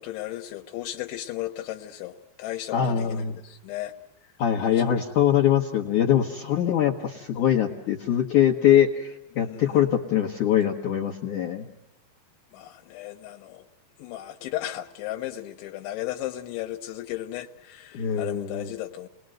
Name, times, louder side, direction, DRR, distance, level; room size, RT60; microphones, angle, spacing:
voice 1, 0.0-3.9 4.7-4.9 9.3-9.9 12.5-13.7 14.0-19.1, left 14 dB, 85° left, 3.4 m, -35 dB
voice 2, 2.7-3.3 4.4-11.6 17.9-18.7, left 10 dB, 60° left, 2.2 m, -23 dB
30.0 x 20.5 x 7.8 m
omnidirectional pair, 5.3 m